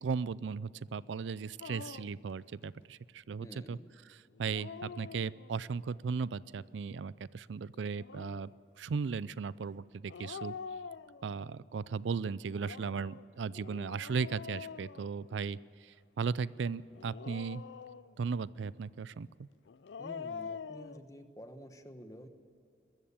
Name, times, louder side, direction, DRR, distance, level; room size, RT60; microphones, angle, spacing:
voice 1, 0.0-3.8 4.1-8.5 8.8-10.5 11.2-17.6 18.2-19.3, right 5 dB, 80° right, 20 dB, 0.4 m, -36 dB
Dog, 1.6-2.2 4.3-5.7 7.8-8.6 10.1-11.6 12.5-15.7 16.9-18.3 19.7-21.0, left 5 dB, 75° left, 0.5 m, -46 dB
voice 2, 3.4-3.9 20.0-22.3, equal, 20° left, 8 dB, 1.1 m, -49 dB
22.0 x 14.0 x 8.7 m, 2.6 s
head